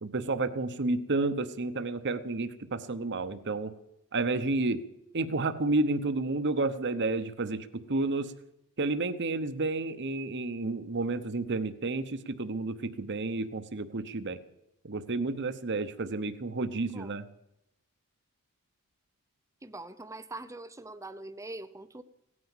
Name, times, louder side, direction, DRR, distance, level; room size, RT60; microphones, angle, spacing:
voice 1, 0.0-3.7 4.1-4.8 5.1-8.3 8.8-14.4 14.8-17.3, right 3 dB, 50° right, 10 dB, 0.9 m, -31 dB
voice 2, 19.6-22.0, right 2 dB, 15° right, 12 dB, 0.7 m, -43 dB
17.0 x 9.7 x 7.3 m, 0.85 s
head